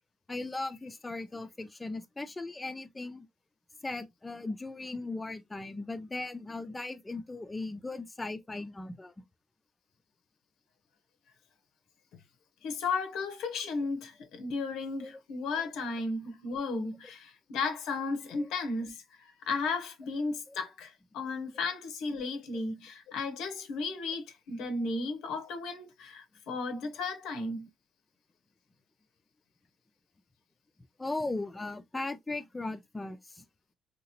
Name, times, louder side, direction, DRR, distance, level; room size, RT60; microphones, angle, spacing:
voice 1, 0.3-3.3 3.8-9.1 15.0-15.1 18.3-18.5 20.5-20.6 22.5-22.6 31.0-33.4, left 2 dB, 20° left, 0.4 m, -38 dB
voice 2, 12.6-27.7, left 3 dB, 90° left, 0.7 m, -34 dB
2.9 x 2.8 x 2.8 m
cardioid pair, 90°, 0 cm